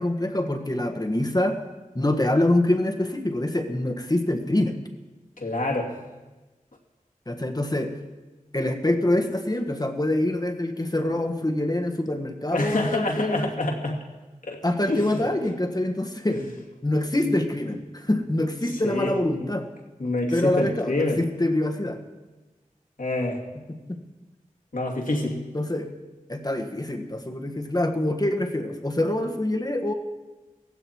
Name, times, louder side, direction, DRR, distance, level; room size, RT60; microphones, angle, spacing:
voice 1, 0.0-1.6 1.9-4.8 7.3-7.9 8.5-13.5 14.6-16.4 16.8-19.7 20.3-22.0 23.9-24.0 25.5-25.9 26.3-29.9, left 1 dB, 30° left, 4 dB, 1.6 m, -25 dB
voice 2, 5.4-5.9 12.5-14.0 14.4-15.2 16.3-16.4 18.8-19.5 20.0-21.2 23.0-23.4 24.7-25.4, left 2 dB, 70° left, -1 dB, 2.6 m, -27 dB
17.0 x 16.0 x 4.6 m, 1.2 s
wide cardioid pair, 65°, 14 cm